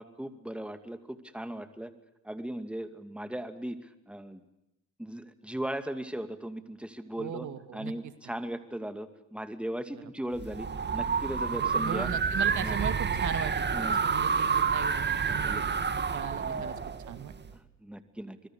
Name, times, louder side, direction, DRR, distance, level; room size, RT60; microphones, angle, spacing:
voice 1, 0.0-1.9 2.2-4.4 5.0-7.5 7.7-10.7 10.9-12.1 12.6-12.8 13.7-14.0 15.3-15.7 16.4-16.6 17.5-18.4, right 1 dB, 5° right, 10 dB, 2.5 m, -38 dB
voice 2, 7.2-8.1 11.5-15.6 15.9-16.8 17.1-17.3, right 10 dB, 75° right, 11 dB, 2.3 m, -38 dB
sound 1, 10.4-17.5, right 5 dB, 35° right, 2.1 m, -29 dB
25.5 x 22.5 x 8.2 m, 0.87 s
cardioid pair, 90°, 30 cm